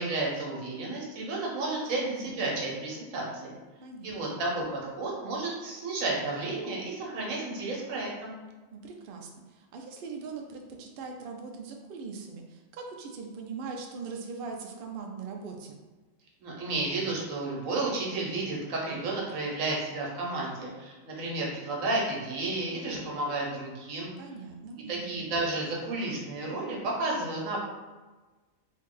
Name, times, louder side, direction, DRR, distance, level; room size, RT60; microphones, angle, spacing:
voice 1, 0.0-3.5 4.0-8.4 16.4-24.1 24.9-27.6, right 2 dB, 85° right, -2 dB, 1.2 m, -32 dB
voice 2, 2.0-2.4 3.8-4.4 8.7-15.8 24.2-25.2, right 5 dB, 60° right, 2 dB, 0.6 m, -41 dB
2.8 x 2.7 x 3.7 m, 1.2 s
omnidirectional pair, 1.4 m